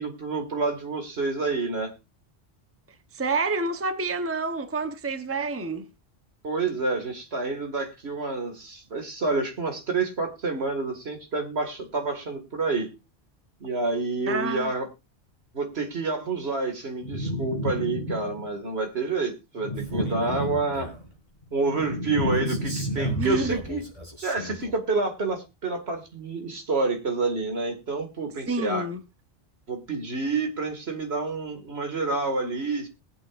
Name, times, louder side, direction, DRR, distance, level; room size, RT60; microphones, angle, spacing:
voice 1, 0.0-1.9 6.4-12.9 13.6-14.9 15.5-20.9 21.5-23.8 24.2-28.9 29.7-32.9, right 3 dB, 70° right, 2.4 m, -28 dB
voice 2, 3.1-5.9 14.3-14.7 23.1-23.6 28.5-29.0, right 3 dB, 15° right, 0.8 m, -28 dB
sound 1, 17.0-18.6 19.6-21.0 21.4-23.8, equal, 45° left, 1.8 m, -31 dB
Male speech man speaking, 19.8-21.1 22.3-24.8, left 1 dB, 40° right, 4.1 m, -39 dB
21.0 x 7.9 x 2.5 m
omnidirectional pair, 1.1 m